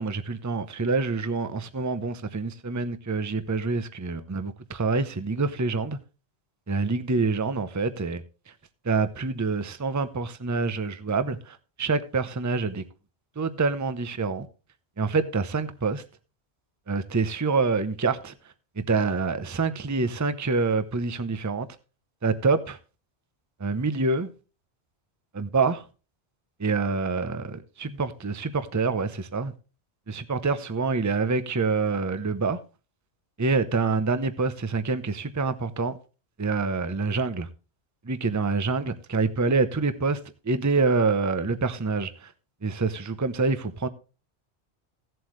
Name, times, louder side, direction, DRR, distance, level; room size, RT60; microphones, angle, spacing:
voice 1, 0.0-6.0 6.7-8.2 8.8-12.8 13.4-14.5 15.0-16.0 16.9-18.3 18.8-21.7 22.2-22.8 23.6-24.3 25.3-25.8 26.6-29.5 30.1-32.6 33.4-36.0 36.4-37.5 38.0-42.3 42.6-43.9, right 4 dB, 20° right, 0.7 m, -26 dB
16.0 x 7.8 x 3.2 m
omnidirectional pair, 1.1 m